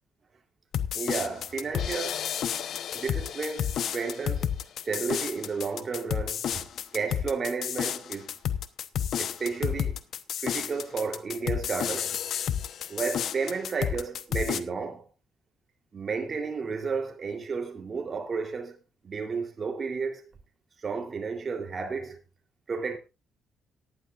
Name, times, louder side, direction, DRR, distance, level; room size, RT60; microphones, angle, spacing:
sound 1, 0.7-14.6, left 9 dB, 70° left, 1.0 m, -31 dB
voice 1, 0.9-2.5 2.9-4.5 4.9-8.3 9.2-10.0 10.4-12.2 12.9-15.1 15.9-18.8 19.0-20.2 20.8-22.2 22.7-23.0, right 5 dB, 40° right, 3.5 m, -32 dB
18.0 x 11.0 x 2.5 m
cardioid pair, 90°, 0 cm